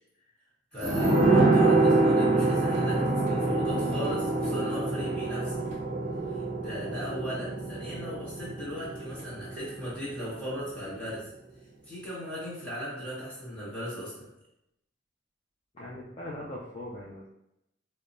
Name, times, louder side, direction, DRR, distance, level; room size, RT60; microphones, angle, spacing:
voice 1, 0.7-5.6 6.3-11.3 11.8-14.3, equal, 5° left, -9 dB, 1.3 m, -37 dB
sound 1, 0.8-10.1 10.4-10.5, right 2 dB, 40° right, 0.6 m, -26 dB
voice 2, 15.7-17.3, left 1 dB, 30° left, -6 dB, 0.4 m, -40 dB
4.7 x 2.1 x 2.6 m, 0.84 s
head